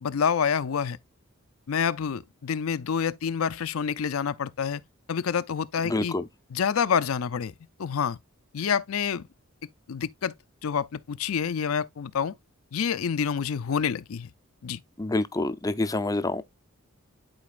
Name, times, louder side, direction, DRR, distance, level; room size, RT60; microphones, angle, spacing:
voice 1, 0.0-1.0 1.7-4.8 5.1-6.2 6.5-7.5 7.8-8.2 8.5-9.2 9.9-10.3 10.6-12.3 12.7-14.3 14.6-14.8, left 7 dB, 75° left, 0.5 m, -27 dB
voice 2, 5.8-6.2 15.0-16.4, left 2 dB, 15° left, 0.5 m, -27 dB
12.0 x 4.0 x 2.4 m
head